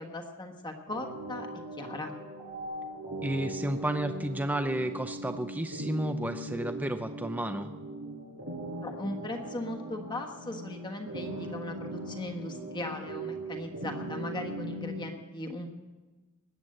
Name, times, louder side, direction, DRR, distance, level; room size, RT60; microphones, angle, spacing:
voice 1, 0.0-1.5 1.8-2.2 8.8-15.8, left 1 dB, 20° left, 3 dB, 1.4 m, -38 dB
sound 1, 0.9-15.1, right 1 dB, 85° right, 6.3 m, -39 dB
voice 2, 3.2-7.7, right 1 dB, 5° right, 7 dB, 0.5 m, -32 dB
20.0 x 8.1 x 7.8 m, 1.2 s
head